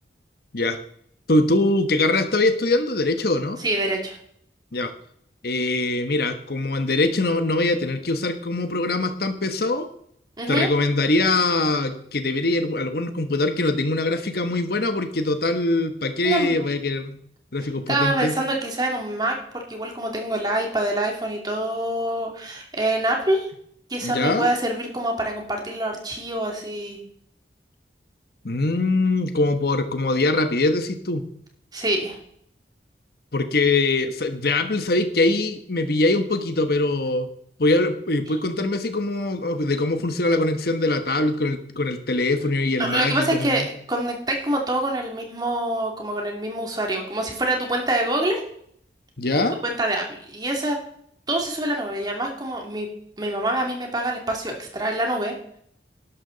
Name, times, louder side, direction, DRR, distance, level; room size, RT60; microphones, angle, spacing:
voice 1, 1.3-3.6 4.7-4.9 5.4-9.9 10.5-17.2 17.5-18.4 24.0-24.5 28.4-31.2 33.3-37.3 37.6-43.7 49.2-49.6, left 2 dB, 55° left, 8 dB, 1.2 m, -23 dB
voice 2, 3.6-4.2 10.4-10.7 16.2-16.6 17.9-23.5 23.9-27.0 31.7-32.2 42.8-48.4 49.3-50.8 51.3-52.9 53.2-55.3, right 1 dB, 20° right, 1 dB, 2.6 m, -25 dB
12.5 x 11.5 x 4.0 m, 0.65 s
head